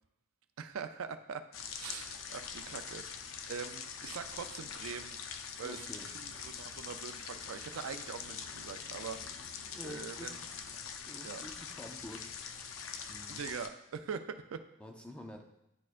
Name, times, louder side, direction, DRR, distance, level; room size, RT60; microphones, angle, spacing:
voice 1, 0.6-1.4 1.8-5.2 5.6-5.9 6.1-9.5 9.8-10.4 11.2-11.4 13.3-14.6, right 6 dB, 80° right, 9 dB, 0.4 m, -43 dB
sound 1, 1.5-13.7, left 6 dB, 70° left, 0.5 m, -44 dB
voice 2, 5.6-6.1 9.7-10.3 11.1-12.3 13.1-13.4 14.8-15.4, left 1 dB, 5° left, 2 dB, 0.5 m, -48 dB
10.5 x 4.3 x 2.5 m, 0.84 s
head